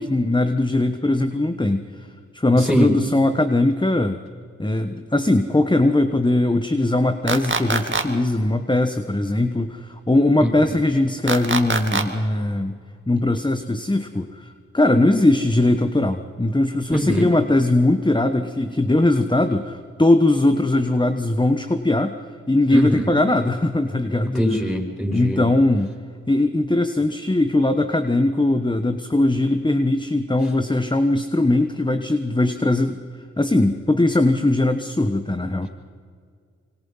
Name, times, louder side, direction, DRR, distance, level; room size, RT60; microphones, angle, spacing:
voice 1, 0.0-2.1 2.3-4.2 4.6-12.8 13.1-22.2 22.5-24.7 25.1-25.9 26.3-33.0 33.4-35.7, left 2 dB, 15° left, 8 dB, 1.3 m, -20 dB
sound 1, 7.3-8.0 11.3-12.0, right 3 dB, 40° right, 2.3 m, -22 dB
voice 2, 16.9-17.2 22.7-23.1 24.3-25.4, equal, ahead, 1 dB, 6.0 m, -21 dB
26.0 x 24.0 x 5.6 m, 2.1 s
cardioid pair, 40°, 30 cm